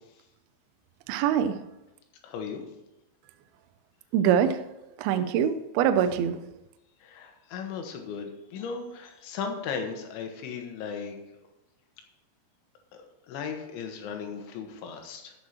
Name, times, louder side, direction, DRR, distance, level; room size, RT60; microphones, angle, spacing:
voice 1, 1.1-1.5 4.1-4.6 5.0-6.4, right 9 dB, 85° right, 9 dB, 2.2 m, -24 dB
voice 2, 2.2-2.6 5.1-5.3 7.0-11.2 12.9-15.3, left 6 dB, 90° left, 4 dB, 3.6 m, -37 dB
13.5 x 6.2 x 4.4 m, 0.94 s
omnidirectional pair, 5.2 m